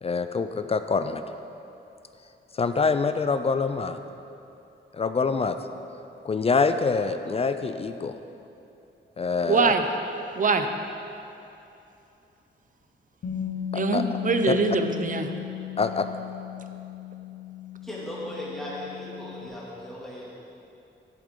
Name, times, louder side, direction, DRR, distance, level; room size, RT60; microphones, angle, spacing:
voice 1, 0.0-1.2 2.5-4.0 4.9-5.6 6.2-8.1 9.2-9.7 13.7-14.0 14.5-14.6 15.8-16.1, left 4 dB, 30° left, 9 dB, 0.4 m, -25 dB
voice 2, 9.5-9.8 10.4-10.7 13.7-15.3, right 4 dB, 40° right, 7 dB, 0.6 m, -23 dB
Bass guitar, 13.2-19.5, left 11 dB, 85° left, 1.4 m, -36 dB
voice 3, 17.8-20.3, left 1 dB, ahead, -7 dB, 2.3 m, -37 dB
11.0 x 8.5 x 3.7 m, 2.8 s
wide cardioid pair, 130°, 20 cm